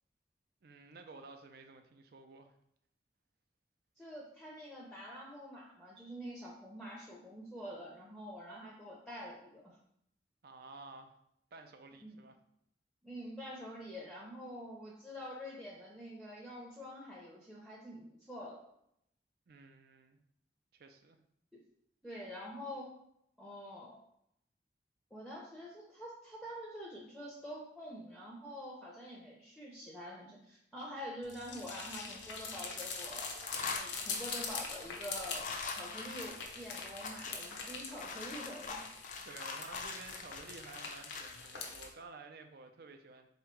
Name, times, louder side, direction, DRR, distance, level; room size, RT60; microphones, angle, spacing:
voice 1, 0.6-2.5 10.4-11.1 11.5-12.4 19.5-20.2 20.7-21.2 39.2-43.3, right 3 dB, 60° right, 6 dB, 0.5 m, -53 dB
voice 2, 4.0-9.7 12.0-12.1 13.0-18.6 21.5-21.6 22.0-22.9 23.4-24.0 25.1-38.9, equal, ahead, -4 dB, 0.6 m, -46 dB
sound 1, 31.2-41.9, left 4 dB, 85° left, 0.7 m, -43 dB
sound 2, 31.9-32.7 33.0-41.4, left 4 dB, 45° left, 0.4 m, -44 dB
3.6 x 2.9 x 4.5 m, 0.75 s
head